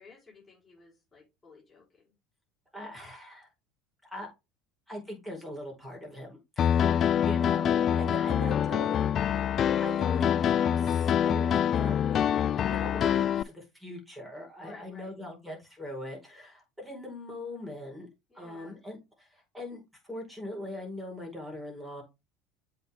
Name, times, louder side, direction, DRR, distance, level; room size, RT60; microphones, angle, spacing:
voice 1, 0.0-2.1 14.6-15.1 18.3-18.8, left 4 dB, 15° left, -5 dB, 4.7 m, -54 dB
voice 2, 2.7-3.5 4.0-4.3 4.9-9.1 9.8-18.1 18.3-22.0, left 1 dB, 5° right, 0 dB, 4.8 m, -41 dB
Piano, 6.6-13.4, left 9 dB, 45° left, 0.3 m, -25 dB
7.8 x 4.8 x 3.6 m, 0.24 s
hypercardioid pair, 75°, 0 cm